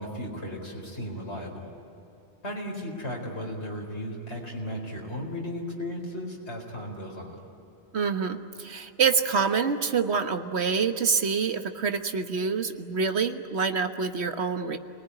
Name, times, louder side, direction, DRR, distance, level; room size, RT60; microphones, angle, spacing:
voice 1, 0.0-1.7 2.4-7.4, equal, 80° left, -2 dB, 4.7 m, -35 dB
voice 2, 7.9-14.8, right 5 dB, 75° right, 7 dB, 1.5 m, -26 dB
28.5 x 20.0 x 9.9 m, 2.8 s
omnidirectional pair, 1.1 m